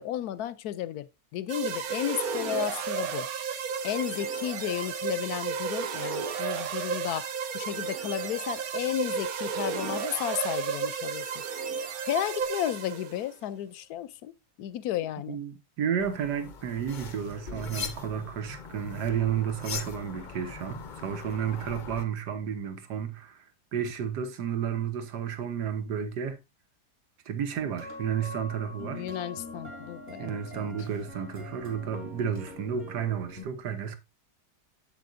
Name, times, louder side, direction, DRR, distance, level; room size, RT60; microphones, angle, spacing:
voice 1, 0.0-3.3 3.8-7.3 7.5-11.2 12.0-14.3 14.6-15.4 28.9-30.7, left 12 dB, 75° left, 1.1 m, -33 dB
sound 1, 1.5-13.3, right 6 dB, 65° right, 1.2 m, -33 dB
voice 2, 15.3-23.5 23.7-26.4 27.3-29.0 30.2-34.0, right 8 dB, 80° right, 1.6 m, -32 dB
sound 2, 16.0-22.0, left 5 dB, 45° left, 0.6 m, -41 dB
sound 3, 27.6-33.4, left 2 dB, 45° right, 3.3 m, -43 dB
8.4 x 7.9 x 2.6 m
omnidirectional pair, 1.7 m